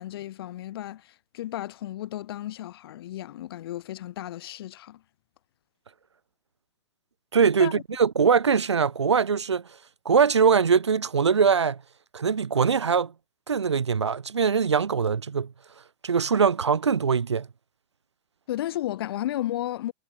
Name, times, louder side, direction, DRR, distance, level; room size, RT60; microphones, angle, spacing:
voice 1, 0.0-5.0 7.6-7.8 18.5-19.9, left 13 dB, 60° left, 2.2 m, -33 dB
voice 2, 7.3-9.6 10.0-11.8 12.1-13.1 13.5-15.5 16.0-17.5, right 6 dB, 80° right, 1.4 m, -22 dB
figure-of-eight pair, 100°, 15 cm